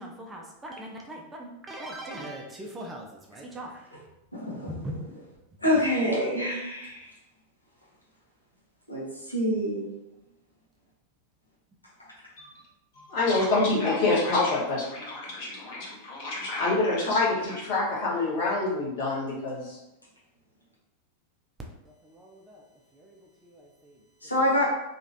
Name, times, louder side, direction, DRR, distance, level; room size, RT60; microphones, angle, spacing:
voice 1, 0.0-4.0 4.7-5.0 21.9-22.7 22.9-24.0, right 1 dB, 15° right, 0 dB, 0.4 m, -41 dB
voice 2, 4.3-4.7 5.6-7.1 8.9-9.9 24.2-24.6, left 1 dB, 85° left, -6 dB, 0.9 m, -26 dB
voice 3, 12.9-19.8, left 2 dB, 50° left, -4 dB, 1.1 m, -27 dB
3.0 x 2.5 x 2.6 m, 0.91 s
figure-of-eight pair, 90°, 0 cm